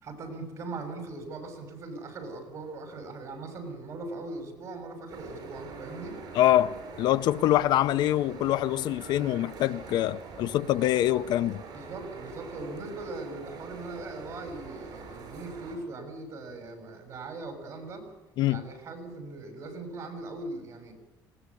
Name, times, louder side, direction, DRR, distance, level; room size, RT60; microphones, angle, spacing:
voice 1, 0.0-6.2 7.5-7.6 11.7-18.1 18.5-20.9, right 2 dB, 40° right, 6.5 m, -40 dB
sound 1, 5.1-15.8, right 5 dB, 60° right, 7.1 m, -44 dB
voice 2, 6.3-11.6 18.4-18.6, left 13 dB, 70° left, 0.7 m, -25 dB
19.5 x 19.0 x 8.5 m
cardioid pair, 135°, 8 cm